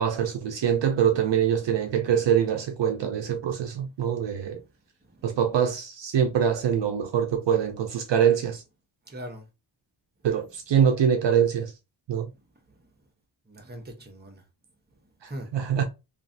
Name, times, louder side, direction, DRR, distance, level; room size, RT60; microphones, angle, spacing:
voice 1, 0.0-4.6 5.2-8.6 10.2-11.7 12.1-12.3 15.2-15.8, right 8 dB, 65° right, 0.5 m, -24 dB
voice 2, 9.1-9.5 12.7-12.9 13.5-14.4 15.3-15.5, equal, 20° right, 0.8 m, -41 dB
3.1 x 2.5 x 2.6 m
wide cardioid pair, 125°, 48 cm